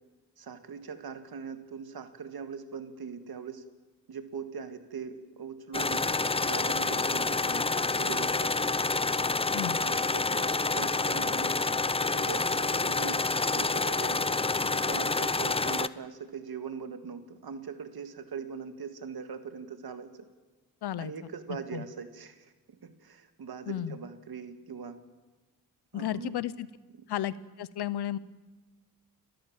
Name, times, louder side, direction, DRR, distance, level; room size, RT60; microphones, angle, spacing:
voice 1, 0.4-3.6 4.1-7.7 8.0-8.6 9.8-11.6 12.1-13.2 13.5-20.3 21.0-22.5 22.8-25.0 25.9-26.4, right 6 dB, 70° right, 8 dB, 1.9 m, -41 dB
sound 1, 5.7-15.9, left 3 dB, 15° left, 0.6 m, -28 dB
voice 2, 20.8-21.1 21.7-21.8 23.7-24.0 25.9-26.7 27.1-28.2, left 11 dB, 80° left, 17 dB, 0.8 m, -33 dB
30.0 x 13.0 x 7.4 m, 1.2 s
cardioid pair, 60°, 39 cm